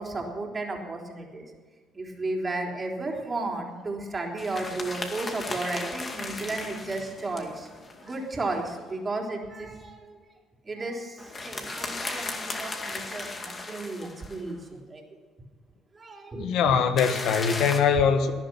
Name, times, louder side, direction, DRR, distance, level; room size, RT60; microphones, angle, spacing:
voice 1, 0.0-1.5 1.9-7.7 8.0-10.2 10.6-15.1 15.9-16.8, right 2 dB, 25° right, 3.5 m, -34 dB
sound 1, 4.4-8.7 11.2-14.5 17.0-17.8, left 3 dB, 30° left, 2.2 m, -36 dB
voice 2, 16.4-18.3, left 6 dB, 75° left, 1.3 m, -22 dB
18.0 x 11.0 x 6.1 m
cardioid pair, 100°, 0 cm